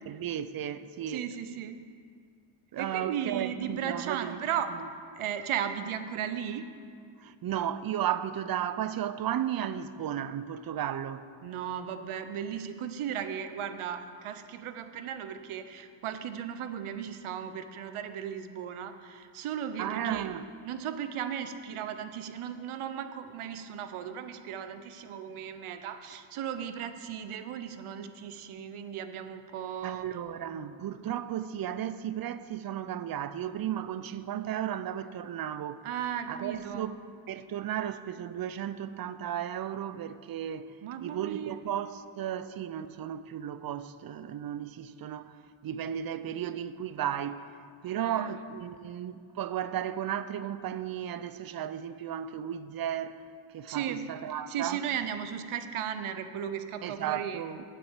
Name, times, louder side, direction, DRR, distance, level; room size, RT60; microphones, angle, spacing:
voice 1, 0.1-1.2 2.7-4.4 4.7-4.9 7.2-11.3 19.8-20.5 29.8-35.8 36.3-40.7 41.0-45.3 45.6-47.5 47.8-53.2 53.5-54.8 56.8-57.6, right 10 dB, 45° right, 0.5 m, -34 dB
voice 2, 1.1-1.8 2.8-4.8 5.1-6.7 11.4-20.3 20.6-30.0 35.8-36.9 40.8-41.6 47.9-48.3 53.7-54.1 54.5-57.4, right 9 dB, 75° right, 0.7 m, -36 dB
8.0 x 6.1 x 7.3 m
cardioid pair, 100°, 50 cm